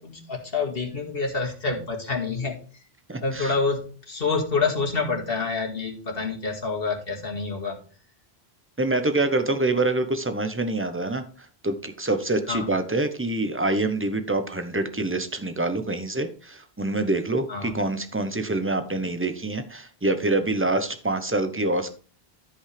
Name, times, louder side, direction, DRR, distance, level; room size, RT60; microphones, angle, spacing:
voice 1, 0.0-2.6 3.2-7.8 12.5-12.7 17.5-17.7, left 4 dB, 65° left, 1 dB, 2.2 m, -27 dB
voice 2, 3.1-3.5 8.8-11.2 11.6-22.0, right 2 dB, 15° right, 9 dB, 0.9 m, -26 dB
13.0 x 5.4 x 3.4 m, 0.40 s
omnidirectional pair, 1.0 m